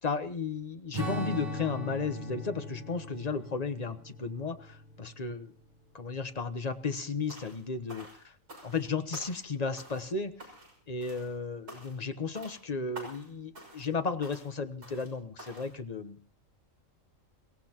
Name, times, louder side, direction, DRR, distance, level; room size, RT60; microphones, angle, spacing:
voice 1, 0.0-5.5 5.9-8.1 8.6-10.5 10.9-16.2, left 4 dB, 30° left, 9 dB, 1.1 m, -34 dB
Strum, 0.9-5.6, left 1 dB, 45° right, 3.6 m, -39 dB
sound 1, 7.3-7.6 7.9-8.8 9.1-9.5 9.8-10.1 10.4-10.8 11.0-11.3 11.7-12.1 12.3-12.6 12.9-13.3 13.5-13.9 14.2-14.5 14.8-15.1 15.4-15.7, right 1 dB, 70° right, 6.5 m, -48 dB
28.5 x 17.0 x 3.0 m, 0.40 s
omnidirectional pair, 1.4 m